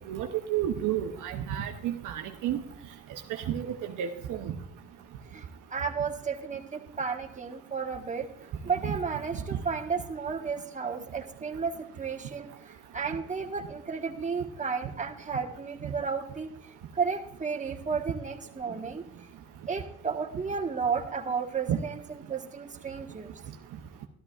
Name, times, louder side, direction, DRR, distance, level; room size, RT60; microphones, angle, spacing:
voice 1, 0.1-2.6 3.3-4.6 8.8-8.9 21.7-21.8, right 10 dB, 55° right, 3 dB, 0.9 m, -31 dB
voice 2, 5.3-16.5 16.9-19.0 19.7-23.3, right 5 dB, 20° right, 2 dB, 1.4 m, -33 dB
13.0 x 12.5 x 2.4 m, 0.69 s
hypercardioid pair, 70°, 36 cm